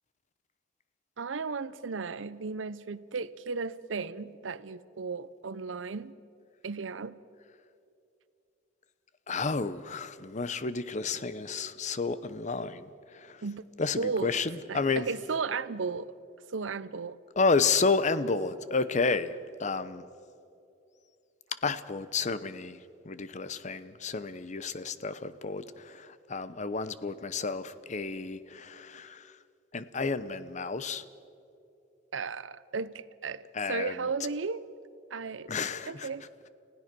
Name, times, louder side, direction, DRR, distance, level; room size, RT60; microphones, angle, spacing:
voice 1, 1.2-6.2 6.6-7.2 13.4-13.6 14.0-14.3 14.7-16.1 16.5-17.2 32.1-33.4 33.7-34.6 35.1-35.5 35.9-36.2, right 4 dB, 90° right, 17 dB, 0.7 m, -35 dB
voice 2, 9.3-13.4 13.8-15.1 17.4-20.1 21.6-22.8 23.0-29.3 29.7-31.0 33.5-34.1 35.5-36.1, left 4 dB, 40° left, 14 dB, 0.8 m, -31 dB
29.5 x 16.0 x 6.1 m, 2.6 s
head